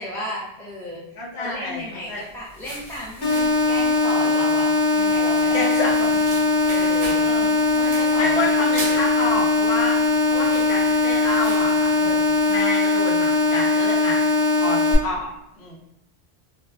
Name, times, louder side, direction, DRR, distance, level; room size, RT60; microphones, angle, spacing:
voice 1, 0.0-1.0 1.4-5.6 6.7-7.4 7.7-8.5 8.8-9.0 12.0-12.3, equal, 5° left, -5 dB, 0.4 m, -34 dB
voice 2, 1.1-2.2 5.5-6.2 6.7-6.9 7.2-7.5 8.2-10.0 10.3-12.1 12.4-14.2 14.5-15.3 15.6-15.8, left 2 dB, 80° left, -3 dB, 1.0 m, -28 dB
sound 1, 1.9-12.6, right 2 dB, 60° right, 0.9 m, -40 dB
sound 2, 3.2-15.0, left 3 dB, 50° left, 0.8 m, -20 dB
2.6 x 2.2 x 2.4 m, 0.87 s
omnidirectional pair, 1.1 m